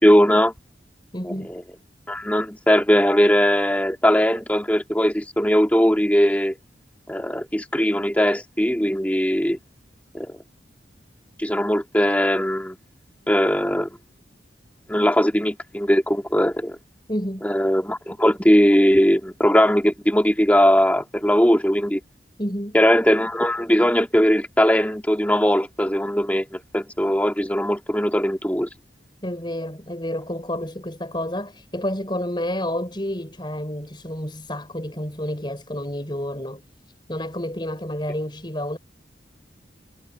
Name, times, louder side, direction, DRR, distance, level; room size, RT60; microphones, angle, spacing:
voice 1, 0.0-0.5 1.2-1.6 2.1-6.6 7.1-9.6 10.1-10.4 11.4-12.8 13.3-13.9 14.9-16.8 17.4-22.0 22.7-28.7, equal, 10° left, 2.1 m, -19 dB
voice 2, 1.1-1.5 17.1-17.5 22.4-22.8 29.2-36.6 37.1-38.8, left 1 dB, 25° left, 4.9 m, -29 dB
head